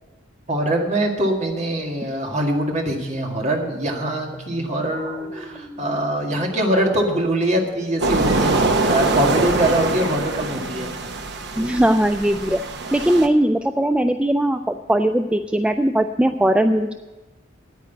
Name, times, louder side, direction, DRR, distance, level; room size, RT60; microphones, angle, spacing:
voice 1, 0.5-10.9, right 1 dB, 35° right, 1 dB, 2.0 m, -23 dB
sound 1, 2.9-11.5, right 1 dB, 25° left, 5.5 m, -39 dB
sound 2, 8.0-13.3, right 2 dB, 60° right, 1.1 m, -23 dB
voice 2, 11.6-12.6 12.9-16.9, right 1 dB, 5° right, 7 dB, 0.3 m, -19 dB
9.6 x 9.3 x 9.2 m, 1.1 s
head